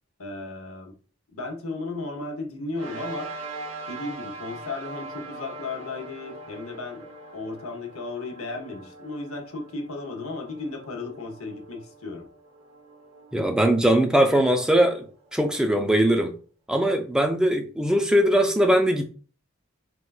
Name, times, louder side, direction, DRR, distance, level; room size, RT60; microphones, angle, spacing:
voice 1, 0.2-0.9 1.3-3.3 3.9-7.1 7.3-12.3, left 3 dB, 90° left, 0.8 m, -35 dB
sound 1, 2.7-15.5, right 2 dB, 75° right, 0.6 m, -42 dB
voice 2, 13.3-15.0 15.3-16.3 16.7-19.1, right 1 dB, 5° right, 0.3 m, -20 dB
4.3 x 2.2 x 2.3 m
head